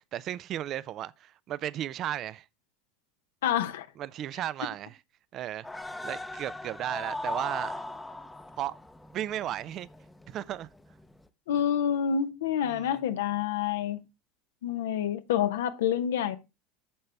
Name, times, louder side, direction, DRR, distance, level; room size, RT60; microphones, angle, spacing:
voice 1, 0.0-2.5 4.0-5.0 5.3-7.8 8.6-8.7 9.1-9.9 10.3-10.7 12.6-13.0, right 12 dB, 45° right, 0.5 m, -35 dB
voice 2, 3.4-3.9 11.5-14.0 14.6-16.4, left 9 dB, 80° left, 0.8 m, -28 dB
sound 1, 5.6-11.3, left 2 dB, 10° left, 0.7 m, -39 dB
8.6 x 6.6 x 3.4 m
hypercardioid pair, 85°, 0 cm